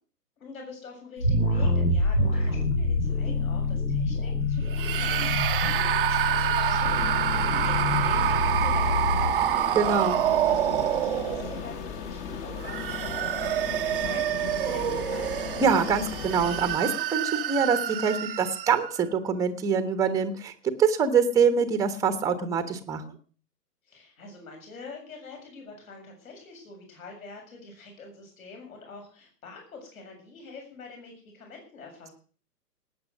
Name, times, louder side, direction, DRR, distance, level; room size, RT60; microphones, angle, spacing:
voice 1, 0.4-9.8 10.4-15.3 23.9-32.1, left 4 dB, 55° left, 1 dB, 7.2 m, -45 dB
sound 1, 1.2-9.3, left 2 dB, 90° left, 5.4 m, -26 dB
sound 2, 4.7-11.8 12.5-19.0, right 11 dB, 35° right, 0.8 m, -27 dB
sound 3, 6.8-16.8, left 7 dB, 25° left, 1.5 m, -36 dB
voice 2, 9.7-10.2 15.6-20.5 20.8-23.0, right 6 dB, 5° right, 10 dB, 1.1 m, -24 dB
18.5 x 9.1 x 6.4 m, 0.40 s
figure-of-eight pair, 125°, 48 cm